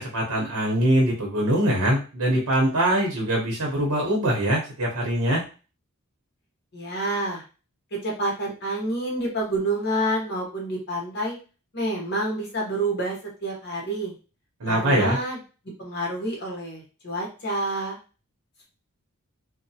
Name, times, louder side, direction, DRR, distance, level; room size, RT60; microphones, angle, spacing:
voice 1, 0.0-5.4 14.6-15.2, right 1 dB, 90° right, -2 dB, 0.8 m, -23 dB
voice 2, 6.7-7.4 8.0-11.4 11.7-13.2 13.4-14.1 14.6-15.4 15.8-18.0, right 1 dB, 50° left, -1 dB, 1.0 m, -28 dB
2.7 x 2.1 x 2.7 m, 0.34 s
head